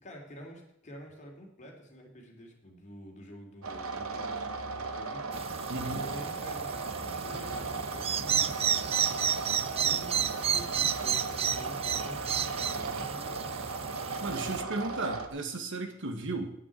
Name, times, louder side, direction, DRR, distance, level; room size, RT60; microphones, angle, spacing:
voice 1, 0.0-5.5 5.8-8.7 9.4-13.6 14.4-15.2, equal, 35° left, 0 dB, 3.1 m, -48 dB
sound 1, 3.6-15.3, right 4 dB, 75° right, 1.2 m, -37 dB
sound 2, 5.3-14.6, right 8 dB, 30° right, 0.4 m, -32 dB
voice 2, 5.7-6.0 14.2-16.5, right 2 dB, 60° right, 7 dB, 1.7 m, -35 dB
9.0 x 8.6 x 8.5 m, 0.79 s
head